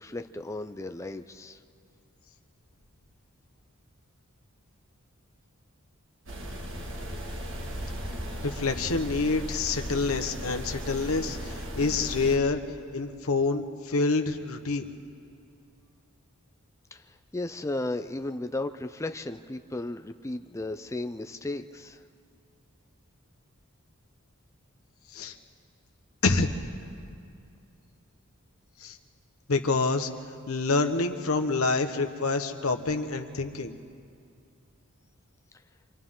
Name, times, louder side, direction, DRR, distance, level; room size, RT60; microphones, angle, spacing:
voice 1, 0.0-1.6 16.9-22.0, left 2 dB, 15° left, 8 dB, 0.4 m, -35 dB
sound 1, 6.3-12.4, equal, 60° right, 2.0 m, -36 dB
voice 2, 8.4-12.6 12.9-14.9 25.1-25.3 26.2-26.5 28.8-29.0 29.5-30.1 30.5-33.7, left 3 dB, 80° left, 7 dB, 1.2 m, -27 dB
28.0 x 25.0 x 3.8 m, 2.4 s
head